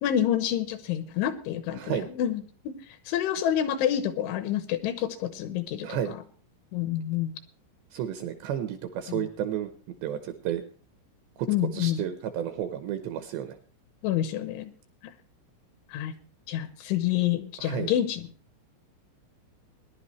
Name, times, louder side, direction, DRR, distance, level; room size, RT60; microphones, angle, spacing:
voice 1, 0.0-2.4 2.9-6.0 6.7-7.3 9.1-9.3 11.5-12.0 14.0-14.7 15.9-16.1 16.5-18.3, left 11 dB, 80° left, 11 dB, 3.0 m, -28 dB
voice 2, 1.7-2.1 5.8-6.2 7.9-9.7 10.0-10.6 11.4-11.5 11.7-13.6 17.6-17.9, right 10 dB, 80° right, 8 dB, 2.6 m, -32 dB
20.5 x 11.0 x 3.1 m, 0.41 s
omnidirectional pair, 5.9 m